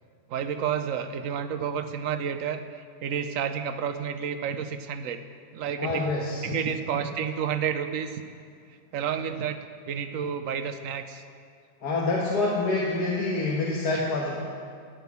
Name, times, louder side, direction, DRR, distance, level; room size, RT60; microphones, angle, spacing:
voice 1, 0.3-5.2 5.5-6.1 6.4-8.2 8.9-11.2 13.9-14.0, right 8 dB, 60° right, 9 dB, 1.0 m, -30 dB
voice 2, 5.8-6.6 11.8-14.4, left 3 dB, 75° left, -2 dB, 1.8 m, -27 dB
14.0 x 6.1 x 8.4 m, 2.2 s
omnidirectional pair, 1.7 m